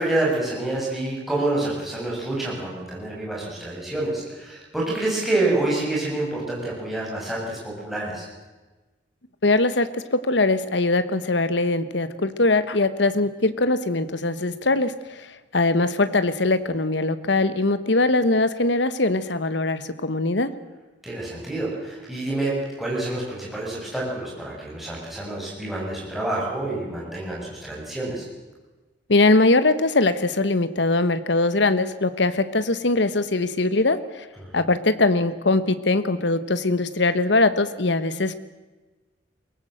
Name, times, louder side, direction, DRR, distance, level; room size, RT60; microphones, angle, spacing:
voice 1, 0.0-8.3 21.0-28.3, right 2 dB, ahead, -5 dB, 7.2 m, -27 dB
voice 2, 9.4-14.9 15.5-20.5 29.1-34.0 34.5-38.3, left 2 dB, 70° left, 13 dB, 1.2 m, -21 dB
23.0 x 18.5 x 7.8 m, 1.2 s
head